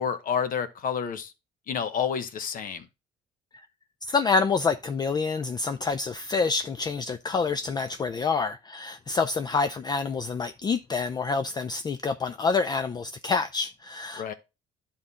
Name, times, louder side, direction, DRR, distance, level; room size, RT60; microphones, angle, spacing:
voice 1, 0.0-1.3 1.7-2.9 14.2-14.3, left 7 dB, 55° left, 1.0 m, -29 dB
voice 2, 4.1-14.3, left 4 dB, 25° left, 0.4 m, -27 dB
10.5 x 3.8 x 4.1 m
cardioid pair, 110°, 17 cm